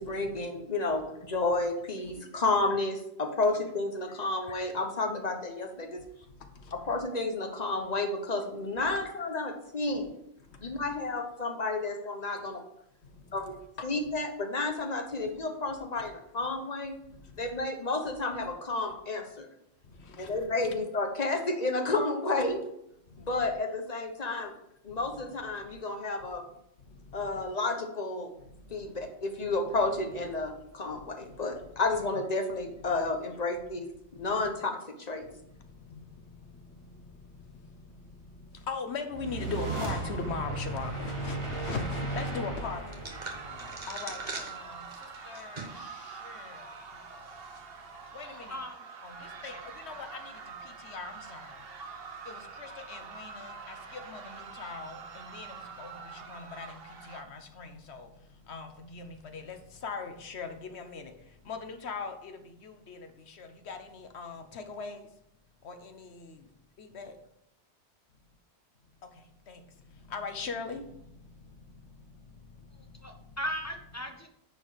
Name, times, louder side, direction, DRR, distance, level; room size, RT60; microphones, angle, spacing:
voice 1, 0.0-6.0 6.9-10.2 10.6-12.6 13.3-17.0 17.4-19.5 20.2-22.6 23.2-24.5 24.8-26.4 27.1-28.3 28.7-33.9 34.2-35.3, left 3 dB, 40° left, 4 dB, 1.2 m, -31 dB
voice 2, 38.7-42.8 43.4-44.8 45.3-45.9 46.2-46.6 48.1-48.6 49.0-49.1 49.4-49.5 49.8-50.2 50.8-51.5 52.3-55.9 56.3-56.7 57.1-58.1 58.5-59.6 59.8-61.1 61.5-62.3 62.6-63.0 63.4-65.0 65.6-66.3 66.8-67.1 69.5-69.6 70.1-70.8, left 5 dB, 70° left, 6 dB, 1.2 m, -39 dB
sound 1, 39.1-44.5, right 2 dB, 25° right, 1.4 m, -35 dB
sound 2, 42.9-45.9 46.3-46.4 47.2-47.6, right 3 dB, 40° right, 1.3 m, -42 dB
sound 3, 43.1-57.2, right 5 dB, 60° right, 1.1 m, -45 dB
voice 3, 48.5-48.9 49.5-49.6 50.0-50.1 72.7-74.3, equal, 15° left, 4 dB, 0.8 m, -38 dB
9.7 x 4.6 x 5.1 m, 0.77 s
omnidirectional pair, 1.1 m